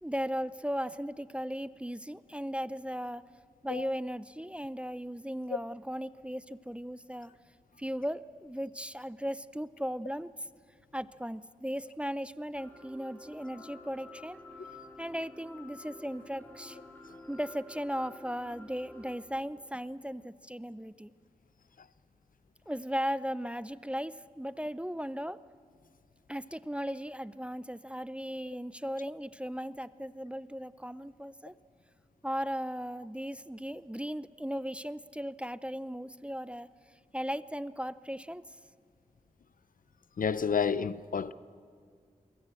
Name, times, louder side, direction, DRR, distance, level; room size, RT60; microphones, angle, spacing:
voice 1, 0.0-3.2 3.6-7.3 7.8-10.3 10.9-14.4 15.0-16.8 17.3-21.1 22.7-25.4 26.3-31.5 32.2-36.7 37.1-38.4, equal, 10° right, 0.5 m, -37 dB
sound 1, 12.5-19.2, left 2 dB, 15° left, 4.6 m, -50 dB
voice 2, 40.2-41.3, left 6 dB, 70° left, 0.6 m, -30 dB
23.0 x 19.0 x 7.7 m
cardioid pair, 50°, 15 cm